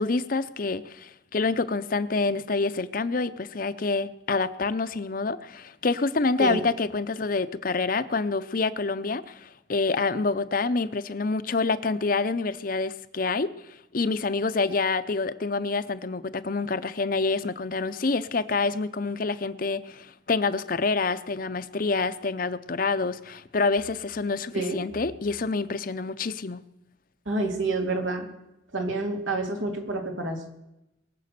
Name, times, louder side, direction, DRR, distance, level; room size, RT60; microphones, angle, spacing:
voice 1, 0.0-13.5 13.9-26.6, left 3 dB, 45° left, 13 dB, 0.6 m, -27 dB
voice 2, 24.5-24.9 27.3-28.3 28.7-30.5, right 2 dB, 85° right, 3 dB, 2.8 m, -28 dB
22.5 x 7.6 x 6.7 m, 0.89 s
head